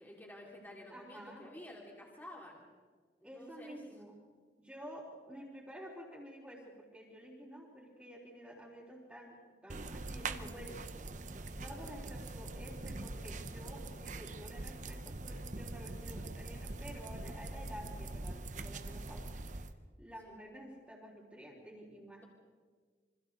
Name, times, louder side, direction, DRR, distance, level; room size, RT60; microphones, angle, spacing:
voice 1, 0.0-2.7 3.3-3.8 20.2-20.4, left 1 dB, 10° left, -2 dB, 3.5 m, -51 dB
voice 2, 0.9-1.4 3.2-4.2 4.6-9.4 9.6-10.8 11.6-19.4 20.0-22.2, equal, 5° right, -8 dB, 3.8 m, -50 dB
sound 1, 9.7-19.7, right 2 dB, 45° right, 1.0 m, -43 dB
28.0 x 25.0 x 4.1 m, 1.5 s
head